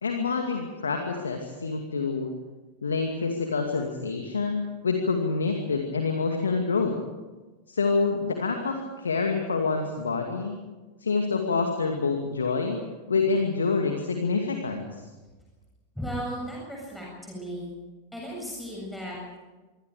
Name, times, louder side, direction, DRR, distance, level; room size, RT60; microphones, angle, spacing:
voice 1, 0.0-2.3 2.8-6.9 7.7-10.6 11.0-12.8 13.1-15.0, left 4 dB, 70° left, 4 dB, 2.4 m, -27 dB
voice 2, 15.9-17.7 18.1-19.4, equal, ahead, -4 dB, 7.7 m, -35 dB
25.5 x 24.5 x 5.1 m, 1.2 s
figure-of-eight pair, 90°, 0 cm